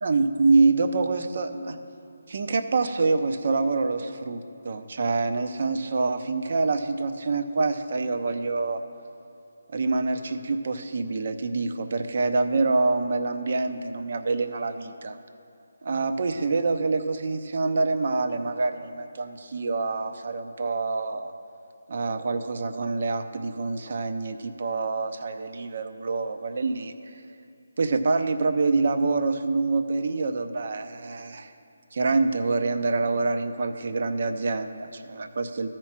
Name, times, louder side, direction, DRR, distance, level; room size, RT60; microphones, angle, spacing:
voice 1, 0.0-1.8 2.3-8.8 9.7-15.2 15.8-21.3 21.9-26.9 27.8-31.5 31.9-35.7, right 3 dB, 50° right, 9 dB, 0.6 m, -26 dB
13.0 x 4.5 x 6.0 m, 2.5 s
figure-of-eight pair, 160°, 0 cm